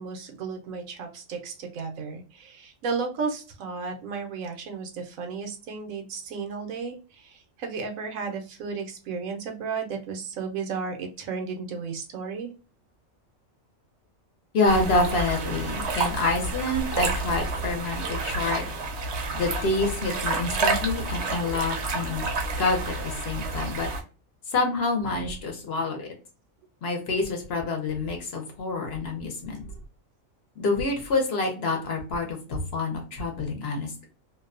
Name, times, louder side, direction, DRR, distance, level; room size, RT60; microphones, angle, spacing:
voice 1, 0.0-12.5, right 5 dB, 85° right, 4 dB, 1.1 m, -34 dB
voice 2, 14.5-18.7 19.3-22.3 22.6-23.9 24.5-26.1 26.8-29.6 30.6-34.1, left 3 dB, 60° left, 2 dB, 0.8 m, -27 dB
sound 1, 14.6-24.0, right 3 dB, 65° right, 0.9 m, -29 dB
2.6 x 2.1 x 2.4 m, 0.35 s
omnidirectional pair, 1.4 m